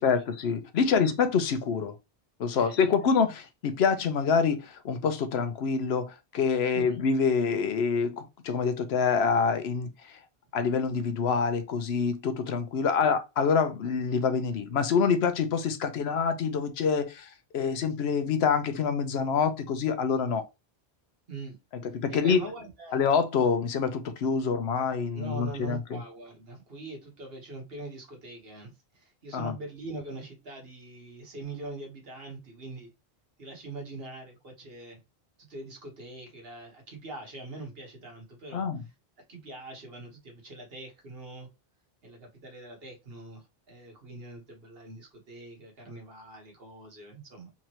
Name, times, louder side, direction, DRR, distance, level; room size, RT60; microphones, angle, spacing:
voice 1, 0.0-1.9 2.4-9.9 10.5-20.4 21.9-22.4 22.9-26.0 29.3-29.6 38.5-38.8, left 5 dB, 80° left, 0.9 m, -26 dB
voice 2, 0.8-1.1 2.5-2.9 6.7-7.0 13.0-13.1 21.3-21.6 22.1-23.0 25.1-32.9 33.4-35.0 35.4-38.7 39.3-41.5 42.0-47.5, right 2 dB, 70° right, 1.5 m, -43 dB
3.6 x 3.1 x 2.9 m
omnidirectional pair, 1.1 m